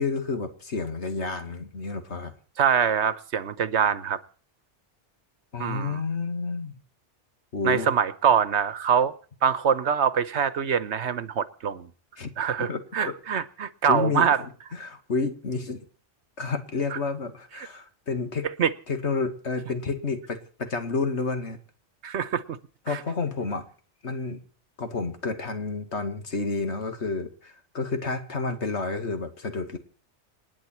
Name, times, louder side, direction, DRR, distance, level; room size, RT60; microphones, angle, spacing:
voice 1, 0.0-2.3 5.5-6.8 7.5-7.9 12.2-12.3 12.6-12.8 13.1-13.2 13.9-15.8 16.4-18.5 18.9-21.6 22.9-23.6 24.0-24.4 24.8-29.8, left 4 dB, 65° left, 2.3 m, -30 dB
voice 2, 2.6-4.2 5.6-6.0 7.6-9.1 9.4-11.9 12.4-14.4 16.9-17.0 17.6-17.7 18.6-18.7 22.0-22.6 22.9-23.0, right 7 dB, 70° right, 1.2 m, -24 dB
28.0 x 9.7 x 4.5 m
omnidirectional pair, 1.2 m